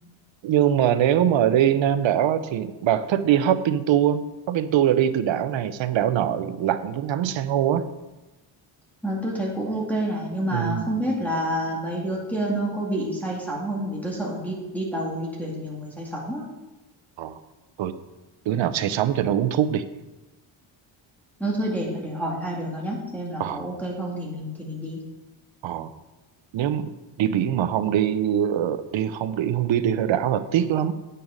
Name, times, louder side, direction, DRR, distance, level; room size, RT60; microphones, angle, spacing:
voice 1, 0.4-7.8 10.5-10.9 17.2-17.4 17.8-17.9 18.5-19.8 23.4-23.7 25.6-25.9 26.5-26.9 27.2-30.9, right 10 dB, 70° right, 12 dB, 0.8 m, -22 dB
voice 2, 9.0-16.5 21.4-25.0, right 1 dB, 5° left, -5 dB, 2.2 m, -28 dB
9.0 x 6.8 x 5.1 m, 1.1 s
cardioid pair, 115°, 49 cm